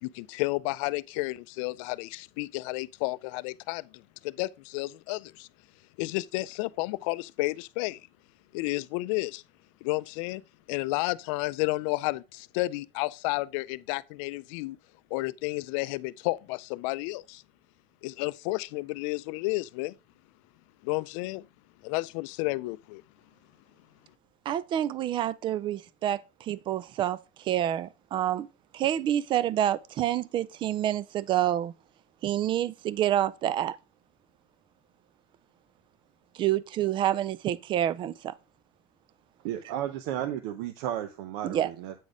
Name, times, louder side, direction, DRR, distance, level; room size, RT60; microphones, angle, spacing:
voice 1, 0.0-5.5 6.0-8.0 8.5-9.4 9.8-10.4 10.7-14.8 15.1-17.4 18.0-19.9 20.8-21.5 21.8-23.0, left 22 dB, 85° left, 0.4 m, -31 dB
voice 2, 24.5-28.5 28.7-31.7 32.2-33.8 36.3-38.3 41.4-41.7, right 12 dB, 30° right, 0.4 m, -28 dB
voice 3, 39.4-41.9, right 11 dB, 80° right, 0.7 m, -33 dB
8.3 x 4.1 x 4.9 m
cardioid pair, 165°, 16 cm